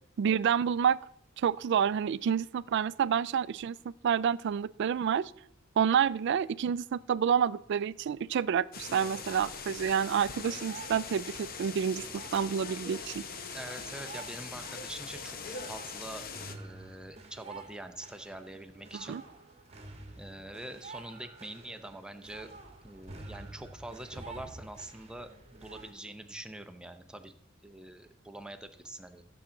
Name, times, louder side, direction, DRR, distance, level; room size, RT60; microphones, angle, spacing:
voice 1, 0.2-1.0 1.4-3.8 4.0-5.3 5.8-12.0 12.3-13.2 19.1-19.2, right 8 dB, 60° right, 19 dB, 0.3 m, -28 dB
sound 1, 8.7-16.5, left 5 dB, 45° left, 0.8 m, -42 dB
sound 2, 9.5-25.9, right 3 dB, 30° right, 1.3 m, -50 dB
voice 2, 13.5-19.2 20.2-22.5 22.8-27.3 27.6-29.3, right 1 dB, 5° right, 7 dB, 0.7 m, -45 dB
14.5 x 7.0 x 3.8 m, 0.76 s
head